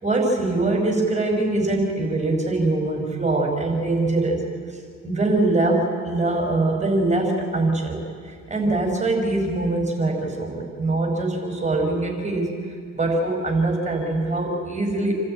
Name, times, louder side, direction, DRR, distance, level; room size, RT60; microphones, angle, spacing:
voice 1, 0.0-4.4 5.0-8.0 8.2-12.5 12.9-15.1, right 2 dB, 25° right, 1 dB, 4.9 m, -23 dB
28.5 x 13.0 x 8.8 m, 2.1 s
cardioid pair, 90°, 30 cm